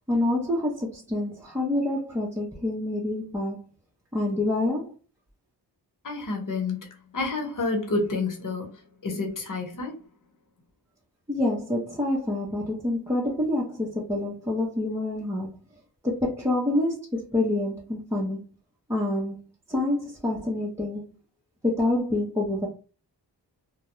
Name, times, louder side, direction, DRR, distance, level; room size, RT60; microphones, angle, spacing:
voice 1, 0.1-3.7 4.1-4.9 11.3-15.6 16.0-18.5 18.9-21.2 21.6-22.7, left 1 dB, 5° right, 0.8 m, -27 dB
voice 2, 6.0-6.9 7.1-10.0, left 3 dB, 45° left, 1.1 m, -29 dB
2.2 x 2.2 x 3.0 m
cardioid pair, 55°, 43 cm